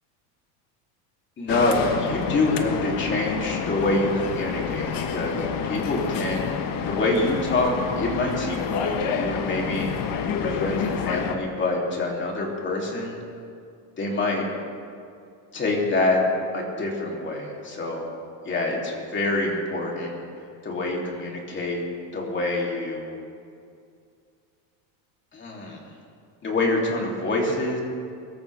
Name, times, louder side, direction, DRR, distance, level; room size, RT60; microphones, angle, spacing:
voice 1, 1.4-9.9 10.4-13.2 14.0-14.5 15.5-16.2 16.5-18.1 18.4-20.2 20.6-21.8 22.1-23.2 25.3-25.8 26.4-27.8, left 2 dB, 25° left, -2 dB, 3.3 m, -26 dB
sound 1, 1.5-11.4, left 6 dB, 45° left, 1.3 m, -29 dB
23.5 x 14.0 x 3.6 m, 2.4 s
cardioid pair, 145°, 46 cm